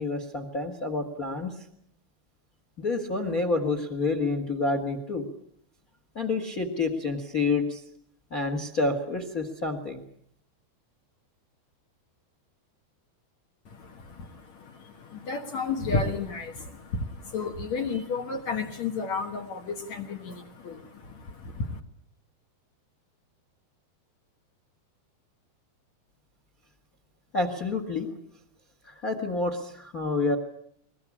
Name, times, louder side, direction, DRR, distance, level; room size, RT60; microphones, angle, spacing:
voice 1, 0.0-1.6 2.8-5.3 6.1-7.8 8.3-10.0 27.3-28.1 28.8-30.4, left 3 dB, 35° left, 8 dB, 1.4 m, -28 dB
voice 2, 13.7-21.8, left 4 dB, 60° left, 4 dB, 2.1 m, -32 dB
21.5 x 21.5 x 8.7 m, 0.68 s
omnidirectional pair, 4.5 m